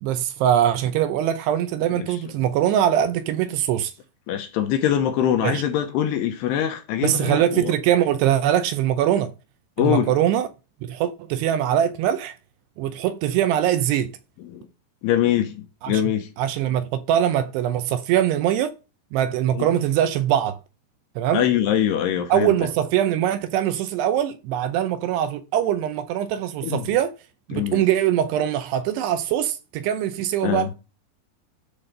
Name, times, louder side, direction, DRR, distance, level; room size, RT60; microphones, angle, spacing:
voice 1, 0.0-3.9 5.4-5.6 7.0-9.3 9.8-10.5 10.8-12.3 12.8-14.1 15.8-16.0 16.4-18.7 19.1-20.6 21.2-21.4 22.3-27.1 27.5-30.7, right 11 dB, 80° right, 2.6 m, -22 dB
voice 2, 4.3-7.7 9.8-10.1 14.4-14.7 15.0-16.3 19.5-19.8 21.3-22.5 26.6-26.9 27.5-27.8 30.4-30.7, left 10 dB, 75° left, 2.8 m, -23 dB
12.0 x 4.4 x 6.6 m
omnidirectional pair, 5.0 m